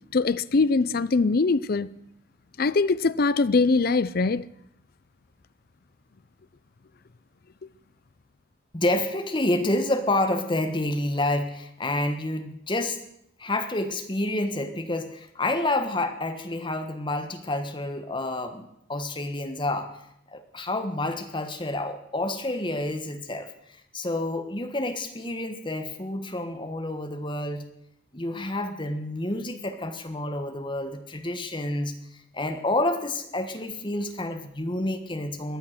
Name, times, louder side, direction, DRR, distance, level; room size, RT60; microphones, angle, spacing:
voice 1, 0.1-1.9 2.6-4.4, left 3 dB, 50° left, 0.5 m, -22 dB
voice 2, 8.7-13.0 13.4-20.0 20.3-23.5 23.9-27.7 28.1-31.9 32.3-35.6, left 1 dB, 25° left, 1.3 m, -29 dB
18.5 x 12.0 x 6.6 m
head